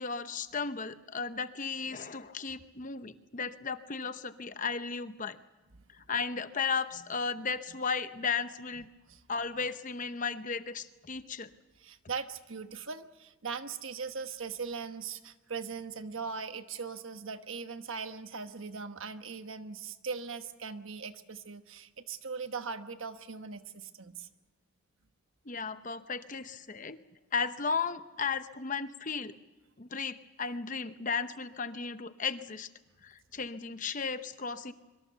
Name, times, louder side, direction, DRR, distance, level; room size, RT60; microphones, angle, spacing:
voice 1, 0.0-5.4 6.0-8.9 9.3-11.5 25.5-27.0 27.3-29.3 29.8-32.7 33.0-34.7, left 5 dB, 35° left, 11 dB, 0.8 m, -35 dB
voice 2, 11.8-24.3, right 5 dB, 65° right, 9 dB, 1.2 m, -40 dB
24.5 x 24.0 x 6.8 m, 1.2 s
head